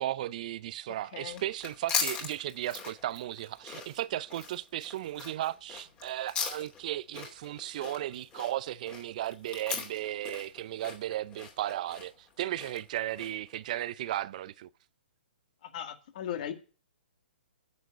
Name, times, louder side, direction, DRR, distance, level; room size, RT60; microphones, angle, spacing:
voice 1, 0.0-14.7, right 13 dB, 45° right, 0.5 m, -35 dB
voice 2, 1.1-1.4 15.6-16.5, left 10 dB, 45° left, 1.9 m, -37 dB
sound 1, 1.2-13.5, left 6 dB, 20° left, 2.6 m, -39 dB
9.5 x 7.0 x 7.8 m
figure-of-eight pair, 125°, 6 cm